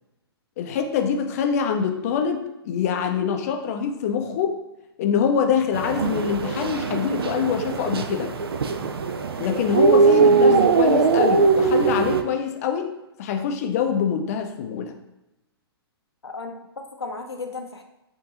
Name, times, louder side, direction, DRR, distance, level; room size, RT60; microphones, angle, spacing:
voice 1, 0.6-4.6 5.0-8.3 9.4-12.9 13.2-14.9, left 7 dB, 35° left, 5 dB, 0.5 m, -24 dB
sound 1, 5.7-12.2, right 4 dB, 65° right, 0.4 m, -20 dB
voice 2, 16.2-17.8, left 3 dB, 80° left, 5 dB, 0.6 m, -35 dB
4.7 x 2.6 x 2.9 m, 0.95 s
figure-of-eight pair, 115°, 13 cm